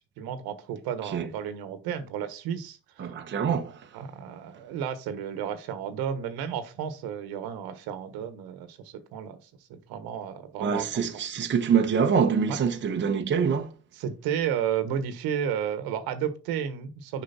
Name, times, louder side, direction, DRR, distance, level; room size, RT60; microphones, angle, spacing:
voice 1, 0.2-3.2 3.9-9.4 9.7-10.9 12.5-12.6 13.9-17.2, right 8 dB, 90° right, 1.3 m, -32 dB
voice 2, 3.0-3.8 10.6-13.7, right 6 dB, 30° right, 1.0 m, -25 dB
6.8 x 5.1 x 4.2 m
cardioid pair, 135°, 36 cm